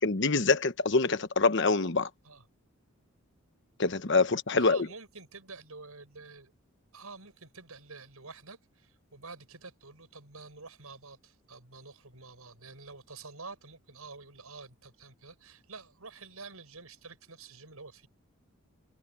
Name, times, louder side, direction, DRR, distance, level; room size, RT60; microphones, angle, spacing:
voice 1, 0.0-2.1 3.8-4.9, left 3 dB, 55° left, 1.1 m, -25 dB
voice 2, 4.6-6.5 6.9-18.1, right 4 dB, 85° right, 7.5 m, -48 dB
head